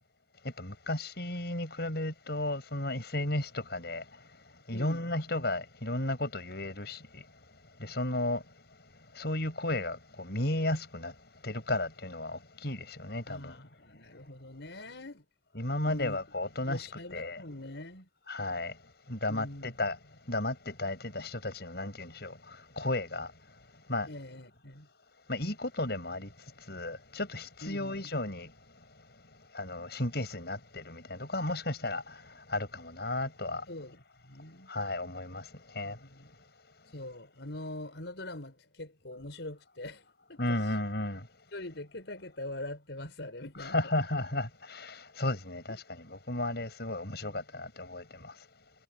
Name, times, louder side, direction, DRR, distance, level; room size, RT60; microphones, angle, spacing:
voice 1, 0.4-4.0 4.7-7.2 7.8-8.4 9.1-11.1 11.4-13.6 15.5-17.4 18.3-18.7 19.1-20.0 20.3-23.3 23.9-24.1 25.3-26.3 26.7-28.5 29.5-33.6 34.7-35.5 35.7-36.0 40.4-41.3 43.6-48.3, left 2 dB, 60° left, 7.9 m, -34 dB
voice 2, 4.7-5.1 13.3-15.3 15.8-16.2 16.6-18.1 19.3-19.8 24.1-24.9 27.6-28.1 33.7-34.7 35.8-36.3 36.9-40.8 41.5-43.9, left 1 dB, 75° left, 5.2 m, -43 dB
head